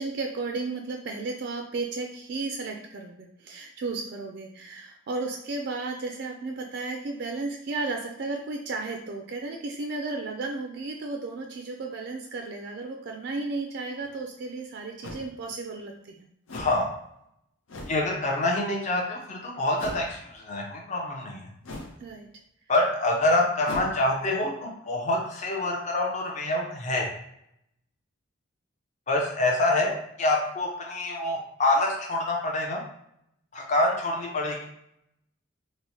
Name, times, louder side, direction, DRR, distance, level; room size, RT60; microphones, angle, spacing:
voice 1, 0.0-16.3 22.0-22.3, right 3 dB, 55° right, 3 dB, 0.3 m, -34 dB
sound 1, 14.0-14.1 15.0-15.3 16.5-16.8 17.7-18.0 19.8-20.2 21.6-22.0 23.6-23.9, left 1 dB, 80° left, 0.6 m, -38 dB
voice 2, 16.5-16.9 17.9-21.5 22.7-27.1 29.1-32.8 33.5-34.7, left 2 dB, 35° left, 0 dB, 0.5 m, -26 dB
2.9 x 2.0 x 4.1 m, 0.75 s
head